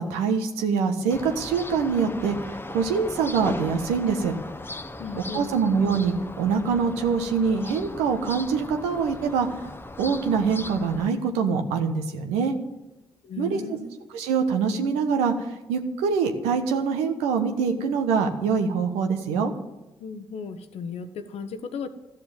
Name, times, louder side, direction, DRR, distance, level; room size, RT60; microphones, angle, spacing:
voice 1, 0.0-4.3 5.3-9.5 10.0-12.6 13.4-13.6 14.1-19.5, right 5 dB, 85° right, 5 dB, 1.2 m, -24 dB
sound 1, 1.1-11.1, left 2 dB, 20° left, 0.9 m, -38 dB
voice 2, 5.0-5.6 13.2-13.9 20.0-21.9, left 5 dB, 70° left, 10 dB, 1.0 m, -35 dB
13.5 x 6.7 x 9.3 m, 0.99 s
hypercardioid pair, 40°, 11 cm